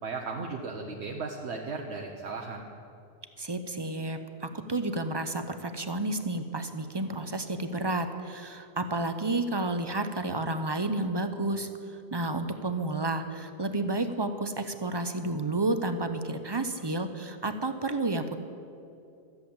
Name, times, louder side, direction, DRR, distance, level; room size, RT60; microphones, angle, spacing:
voice 1, 0.0-2.7, right 4 dB, 85° right, 0 dB, 1.2 m, -36 dB
voice 2, 3.4-11.7 12.1-18.3, right 2 dB, 30° right, 8 dB, 0.7 m, -31 dB
13.5 x 7.9 x 8.6 m, 2.5 s
omnidirectional pair, 1.1 m